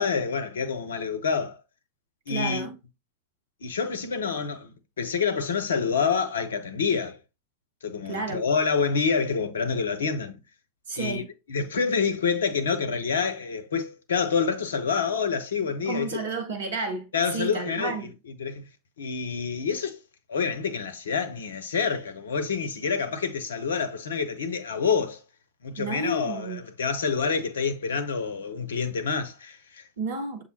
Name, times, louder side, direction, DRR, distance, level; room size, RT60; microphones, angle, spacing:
voice 1, 0.0-1.6 2.3-2.8 3.6-7.2 7.8-10.4 11.0-16.3 17.1-18.0 18.4-18.6 19.0-20.0 20.3-25.2 25.6-29.8, left 5 dB, 65° left, 0.7 m, -27 dB
voice 2, 2.3-2.7 8.0-8.5 10.9-11.3 15.8-17.1 17.3-18.0 25.8-26.6 30.0-30.4, right 3 dB, 60° right, 0.8 m, -31 dB
6.6 x 2.6 x 2.8 m
figure-of-eight pair, 90°, 0 cm